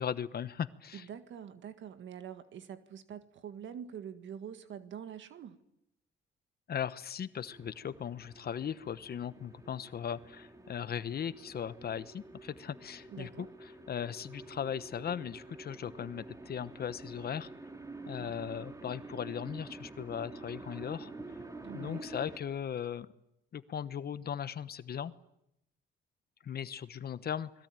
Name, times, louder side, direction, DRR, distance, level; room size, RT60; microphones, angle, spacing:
voice 1, 0.0-1.1 6.7-13.3 13.9-17.5 18.1-21.1 21.7-23.1 23.5-25.1 26.4-27.5, left 8 dB, 50° left, 14 dB, 1.1 m, -38 dB
voice 2, 0.9-5.6 13.1-13.5 21.6-22.1, right 8 dB, 70° right, 10 dB, 1.8 m, -45 dB
sound 1, 7.4-22.4, right 2 dB, 15° right, 2.8 m, -48 dB
29.5 x 21.0 x 9.1 m, 0.84 s
cardioid pair, 90°, 20 cm